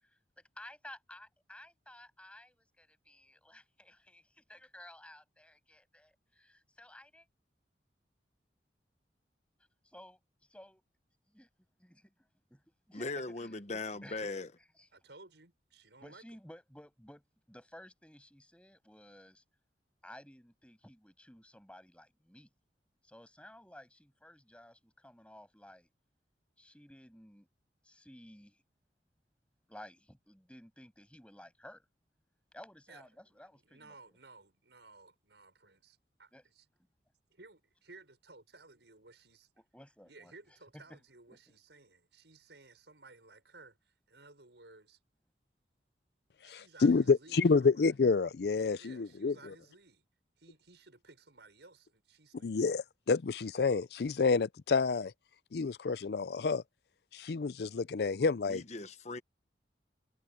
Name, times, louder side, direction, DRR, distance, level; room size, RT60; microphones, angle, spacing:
voice 1, 0.0-7.3 9.8-10.8 11.3-11.5 11.8-13.6 14.0-14.2 14.6-14.9 16.0-19.4 20.0-22.5 23.0-25.9 26.6-27.5 27.8-28.6 29.7-31.9 32.5-34.2 36.3-36.4 36.7-36.9 39.6-40.3 40.7-41.0 41.3-41.4, left 1 dB, 5° left, 6.9 m, -55 dB
voice 2, 12.9-14.5 58.5-59.2, left 3 dB, 40° left, 1.1 m, -39 dB
voice 3, 14.9-16.2 32.9-36.6 37.3-39.5 40.1-45.0 46.4-47.9 48.7-50.1 50.4-52.6, right 3 dB, 80° right, 6.2 m, -57 dB
voice 4, 46.5-49.3 52.4-55.1 55.5-56.6 57.1-58.6, left 4 dB, 60° left, 0.4 m, -29 dB
head